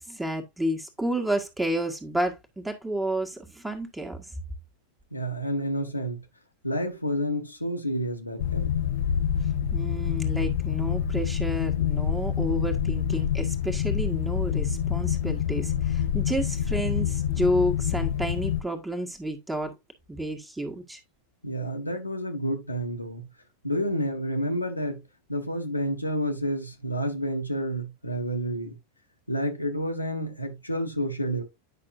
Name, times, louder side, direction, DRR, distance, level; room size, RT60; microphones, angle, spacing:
voice 1, 0.0-4.2 9.7-19.7 20.1-21.0, right 1 dB, 5° right, 1.6 m, -30 dB
voice 2, 5.1-6.2 6.6-8.7 21.4-23.2 23.6-25.0 25.3-28.7 29.3-31.4, equal, 85° left, 1.7 m, -29 dB
sound 1, 8.4-18.6, left 9 dB, 60° left, 0.5 m, -27 dB
9.9 x 5.9 x 2.6 m
figure-of-eight pair, 90°, 0 cm